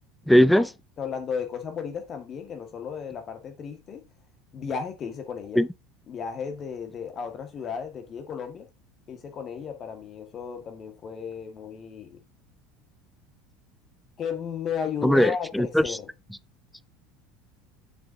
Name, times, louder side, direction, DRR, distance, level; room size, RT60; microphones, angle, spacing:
voice 1, 0.3-0.7 5.6-5.7 15.0-16.0, equal, ahead, 0.3 m, -19 dB
voice 2, 1.0-4.0 4.5-5.6 6.1-8.7 9.1-12.2 14.2-16.1, left 7 dB, 40° left, 1.7 m, -34 dB
7.5 x 6.7 x 2.8 m
figure-of-eight pair, 70°, 0 cm